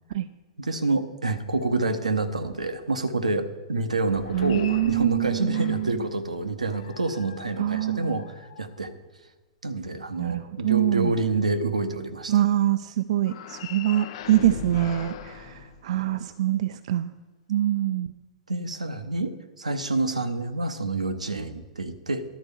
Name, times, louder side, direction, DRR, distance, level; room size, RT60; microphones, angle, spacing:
voice 1, 0.6-8.9 9.6-12.3 18.5-22.2, right 2 dB, 90° right, 9 dB, 0.8 m, -28 dB
sound 1, 4.0-6.1 6.7-9.1 13.2-16.4, left 7 dB, 55° left, 0.6 m, -41 dB
voice 2, 4.3-6.0 7.6-8.3 10.2-11.1 12.3-17.1 17.5-18.1, right 13 dB, 65° right, 11 dB, 0.4 m, -25 dB
11.5 x 4.3 x 6.9 m, 1.3 s
figure-of-eight pair, 105°, 4 cm